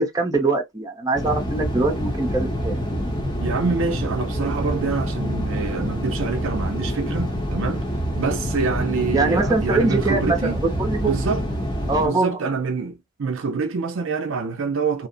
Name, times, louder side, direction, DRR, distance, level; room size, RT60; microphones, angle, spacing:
voice 1, 0.0-2.8 9.1-11.2 11.9-12.4, right 3 dB, 15° right, 0.6 m, -22 dB
sound 1, 1.1-12.1, equal, 20° left, 0.8 m, -26 dB
voice 2, 3.4-7.8 8.2-10.6 11.0-11.4 12.0-15.1, right 4 dB, 65° right, 0.4 m, -26 dB
2.8 x 2.1 x 2.6 m
head